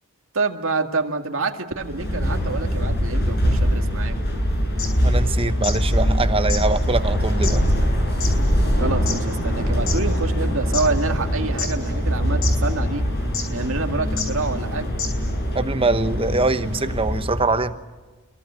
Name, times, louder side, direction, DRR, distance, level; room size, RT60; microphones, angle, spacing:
voice 1, 0.3-4.2 8.8-13.0 13.5-14.9, right 3 dB, 60° right, 4 dB, 2.1 m, -27 dB
sound 1, 1.8-17.5, equal, 45° left, 7.7 m, -22 dB
sound 2, 4.7-5.9 6.1-6.2 6.5-10.1 10.5-11.3 11.6-12.1 12.4-12.5 13.3-13.6 14.2-14.3 14.6-14.7 15.0-15.3, left 6 dB, 60° left, 5.8 m, -30 dB
voice 2, 5.0-7.8 15.5-17.8, right 3 dB, 25° right, 10 dB, 1.0 m, -23 dB
26.5 x 22.5 x 7.6 m, 1.3 s
head